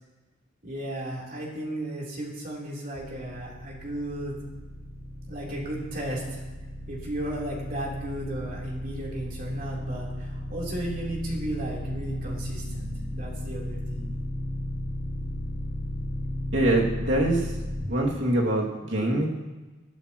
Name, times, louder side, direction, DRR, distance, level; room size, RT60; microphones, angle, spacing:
voice 1, 0.6-4.4 5.3-6.4 6.9-14.1, right 1 dB, 50° right, -3 dB, 3.7 m, -34 dB
sound 1, 3.0-17.8, left 1 dB, 5° right, 2.9 m, -35 dB
voice 2, 16.5-17.5 17.9-19.3, right 1 dB, 75° right, -2 dB, 2.5 m, -24 dB
20.0 x 13.5 x 3.1 m, 1.2 s
head